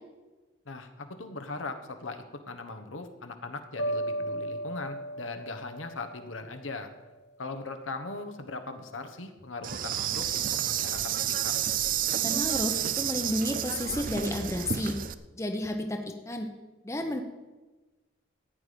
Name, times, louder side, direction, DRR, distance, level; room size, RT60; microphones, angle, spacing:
voice 1, 0.6-6.9 7.4-11.6, left 3 dB, 80° left, 6 dB, 1.3 m, -39 dB
sound 1, 3.8-6.9, right 1 dB, 55° left, 0.8 m, -35 dB
Insect, 9.6-15.1, right 10 dB, 45° right, 0.4 m, -30 dB
voice 2, 12.1-15.0 15.3-16.5 16.8-17.2, left 1 dB, 15° left, 4 dB, 0.9 m, -31 dB
13.5 x 9.5 x 5.2 m, 1.2 s
head